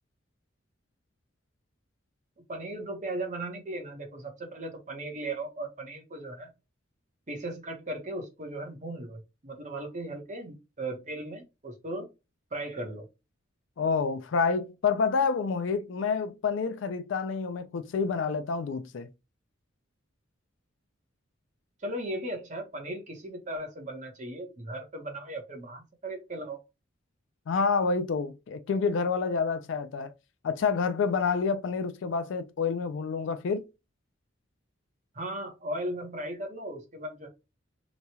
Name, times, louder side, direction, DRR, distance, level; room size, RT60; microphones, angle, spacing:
voice 1, 2.5-6.5 7.3-12.1 12.5-13.1 21.8-26.6 35.1-37.3, right 1 dB, 40° right, 0.9 m, -37 dB
voice 2, 13.8-19.1 27.5-30.1 30.4-33.6, left 5 dB, 70° left, 0.4 m, -28 dB
3.0 x 2.3 x 2.7 m
head